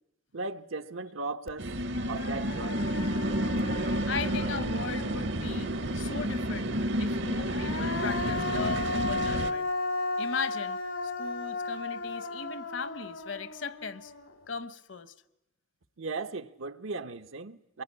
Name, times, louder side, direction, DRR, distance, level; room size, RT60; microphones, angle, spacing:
voice 1, 0.3-1.7 2.1-2.9 16.0-17.8, right 3 dB, 85° right, 1.0 m, -37 dB
Human voice, 1.5-1.6 1.9-5.6 7.2-14.5, left 3 dB, 90° left, 2.5 m, -35 dB
sound 1, 1.6-9.5, right 1 dB, 60° right, 0.9 m, -30 dB
voice 2, 3.8-9.7 10.2-10.8 11.2-14.1 14.5-15.1, left 5 dB, 65° left, 1.0 m, -38 dB
24.0 x 23.0 x 9.7 m
head